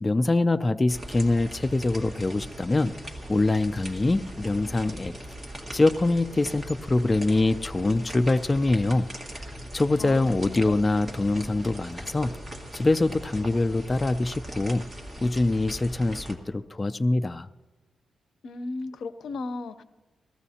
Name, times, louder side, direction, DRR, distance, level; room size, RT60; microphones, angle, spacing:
voice 1, 0.0-2.9 3.3-5.1 5.7-9.1 9.3-9.4 9.7-12.3 12.7-14.8 15.2-17.5, left 2 dB, 20° left, 9 dB, 0.3 m, -24 dB
forest drop rain, 0.9-16.3, equal, 15° right, 1.8 m, -40 dB
voice 2, 10.0-10.8 18.4-19.8, left 3 dB, 75° left, 11 dB, 0.6 m, -36 dB
20.5 x 15.5 x 2.8 m, 1.2 s
wide cardioid pair, 125°, 0 cm